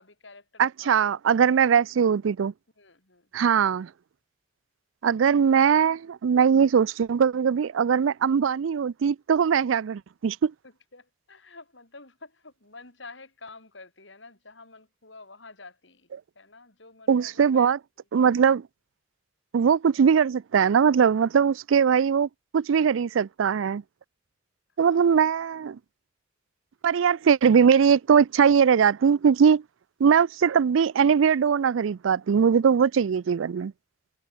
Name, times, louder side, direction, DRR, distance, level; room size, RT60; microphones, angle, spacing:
voice 1, 0.0-1.2 2.8-3.3 10.6-16.1 16.4-17.7 24.8-25.1, left 3 dB, 70° left, 5.4 m, -49 dB
voice 2, 0.6-2.5 3.3-3.9 5.0-10.5 17.1-17.8 18.1-18.7 19.5-23.8 24.8-25.8 26.8-29.6 30.0-33.7, right 7 dB, 80° right, 0.4 m, -21 dB
head